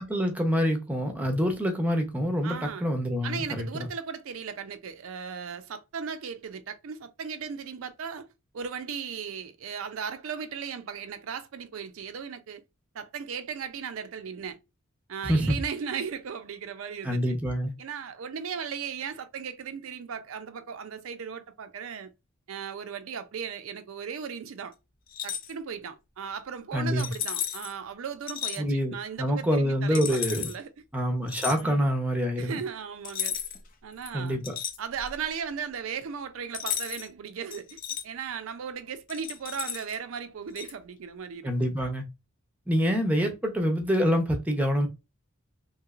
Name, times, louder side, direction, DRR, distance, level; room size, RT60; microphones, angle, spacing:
voice 1, 0.0-3.9 15.2-15.6 17.0-17.7 26.7-27.1 28.6-30.5 30.9-32.6 34.1-34.4 41.4-42.0 42.7-44.9, equal, 5° right, 0.6 m, -26 dB
voice 2, 2.4-2.9 3.2-8.3 8.5-12.6 12.9-14.6 15.1-17.4 17.8-22.1 22.5-24.7 25.2-30.2 30.5-30.7 31.6-31.9 32.4-33.4 33.8-34.4 34.8-37.8 38.0-41.5, right 6 dB, 70° right, 0.4 m, -37 dB
sound 1, 25.1-25.5 27.0-27.7 28.3-28.6 29.9-30.6 31.3-31.6 33.0-33.7 34.0-35.2 36.5-37.1 37.5-38.0 39.1-40.0 40.6-40.7, left 9 dB, 40° left, 0.5 m, -34 dB
3.0 x 2.9 x 2.4 m
head